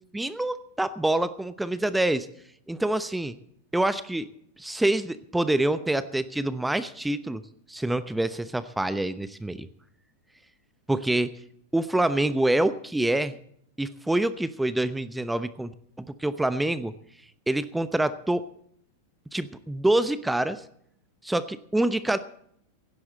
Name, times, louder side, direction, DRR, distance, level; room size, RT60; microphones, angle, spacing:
voice 1, 0.1-2.3 2.7-3.4 3.7-4.3 4.6-7.4 7.7-9.7 10.9-11.3 11.7-13.3 13.8-15.7 16.0-16.9 17.5-18.4 19.3-20.6 21.2-22.2, right 1 dB, 5° right, 14 dB, 0.8 m, -26 dB
17.5 x 16.0 x 4.2 m, 0.68 s
figure-of-eight pair, 90°, 0 cm